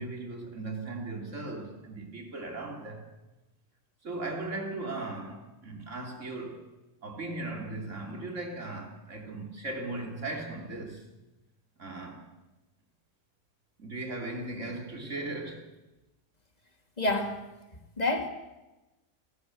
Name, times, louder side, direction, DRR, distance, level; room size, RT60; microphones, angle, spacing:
voice 1, 0.0-3.1 4.0-6.6 7.0-11.0 11.8-12.3 13.8-15.7, right 2 dB, 50° right, 2 dB, 3.5 m, -37 dB
voice 2, 17.0-17.5 18.0-18.3, left 2 dB, 25° left, 4 dB, 2.4 m, -28 dB
28.5 x 13.5 x 7.8 m, 1.0 s
omnidirectional pair, 1.7 m